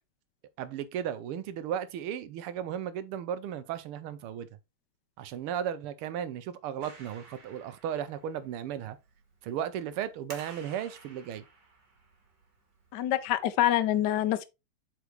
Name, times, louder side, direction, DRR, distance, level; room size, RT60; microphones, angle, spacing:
voice 1, 0.6-4.5 5.2-9.0 9.4-11.4, right 9 dB, 85° right, 1.6 m, -35 dB
Clapping, 6.8-13.5, right 3 dB, 50° right, 2.4 m, -54 dB
voice 2, 12.9-14.4, left 12 dB, 70° left, 1.0 m, -26 dB
8.0 x 4.7 x 3.1 m
omnidirectional pair, 2.4 m